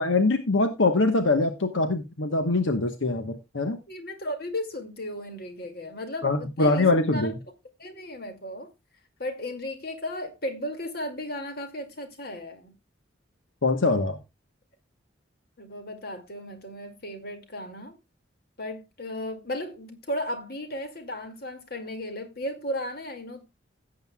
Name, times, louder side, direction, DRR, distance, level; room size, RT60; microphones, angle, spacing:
voice 1, 0.0-3.8 6.2-7.3 13.6-14.2, left 3 dB, 80° left, 1.1 m, -23 dB
voice 2, 3.9-7.3 7.8-8.7 9.2-12.7 15.6-18.0 18.6-23.4, left 1 dB, 50° left, 2.2 m, -35 dB
16.5 x 8.0 x 2.3 m
head